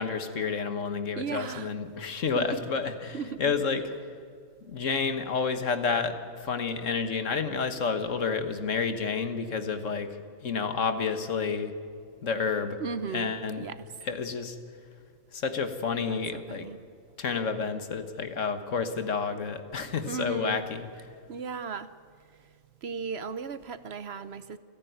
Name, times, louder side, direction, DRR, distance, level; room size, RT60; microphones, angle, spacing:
voice 1, 0.0-3.8 4.6-10.1 10.4-11.7 12.2-12.8 13.1-13.6 14.0-14.6 15.3-16.7 17.2-20.9, left 5 dB, 70° left, 9 dB, 1.7 m, -30 dB
voice 2, 1.1-1.7 2.4-2.6 3.1-3.6 12.8-13.8 16.0-16.8 20.1-20.6 21.3-21.9 22.8-24.6, right 5 dB, 55° right, 13 dB, 1.0 m, -36 dB
28.5 x 10.5 x 9.3 m, 2.2 s
omnidirectional pair, 1.3 m